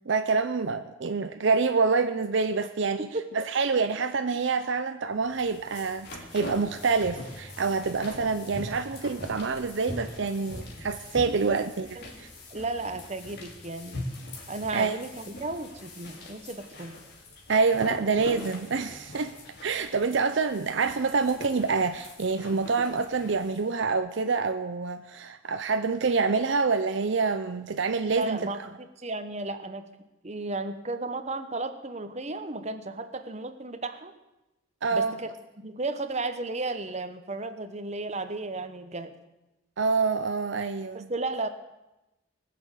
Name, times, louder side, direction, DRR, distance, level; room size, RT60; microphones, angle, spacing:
voice 1, 0.1-3.1 3.3-11.9 12.2-12.3 14.7-15.0 17.5-19.3 19.6-28.4 34.8-35.1 39.8-41.1, right 4 dB, 60° right, 9 dB, 0.6 m, -26 dB
sound 1, 5.3-23.7, left 1 dB, 55° left, 2.6 m, -42 dB
voice 2, 12.5-14.1 14.5-17.0 28.1-29.9 30.2-34.1 34.9-35.3 35.6-39.1 40.9-41.5, right 2 dB, 35° right, 10 dB, 1.0 m, -34 dB
20.0 x 6.9 x 8.2 m, 0.99 s
head